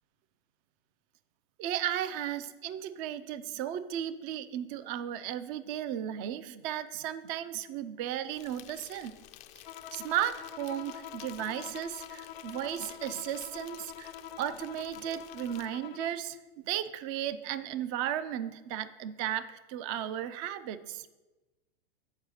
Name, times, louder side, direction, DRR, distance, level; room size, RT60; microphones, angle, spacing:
voice 1, 1.6-9.1 9.9-16.4 16.6-21.1, right 10 dB, 35° right, 14 dB, 0.4 m, -35 dB
Insect, 8.3-15.7, left 13 dB, 25° left, 0.4 m, -52 dB
Bowed string instrument, 9.6-16.3, left 10 dB, 80° left, 0.6 m, -46 dB
7.3 x 4.8 x 6.4 m, 1.1 s
hypercardioid pair, 125°, 30 cm